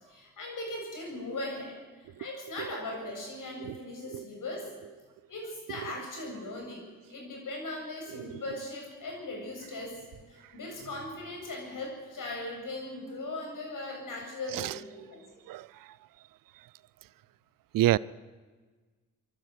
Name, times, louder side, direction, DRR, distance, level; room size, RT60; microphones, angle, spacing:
voice 1, 0.1-4.7 5.3-6.8 7.1-10.0 10.3-15.2, left 2 dB, 70° left, 0 dB, 8.0 m, -39 dB
voice 2, 3.6-3.8 4.1-4.2 8.1-8.4 14.5-14.7 15.5-15.7 17.7-18.0, right 15 dB, 75° right, 22 dB, 0.6 m, -27 dB
24.0 x 12.0 x 9.3 m, 1.4 s
supercardioid pair, 45°, 33 cm